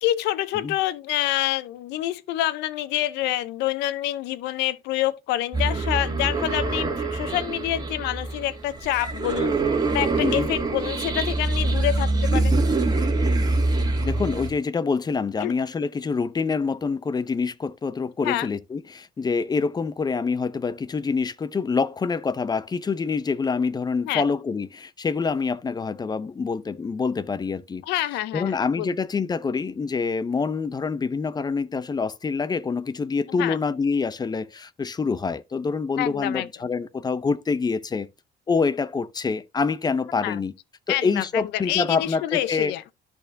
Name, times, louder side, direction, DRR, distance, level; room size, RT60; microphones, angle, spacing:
voice 1, 0.0-9.6 9.9-12.6 15.4-15.6 18.2-18.5 24.0-24.2 27.8-28.9 33.4-33.6 36.0-36.5 40.2-40.4 40.9-42.8, left 14 dB, 90° left, 0.6 m, -27 dB
sound 1, 5.5-14.5, right 2 dB, 25° right, 1.8 m, -24 dB
voice 2, 10.2-10.5 14.0-27.8 28.3-38.1 38.5-40.5 40.9-42.7, left 5 dB, 25° left, 0.6 m, -26 dB
13.0 x 4.4 x 2.6 m
cardioid pair, 110°, 17 cm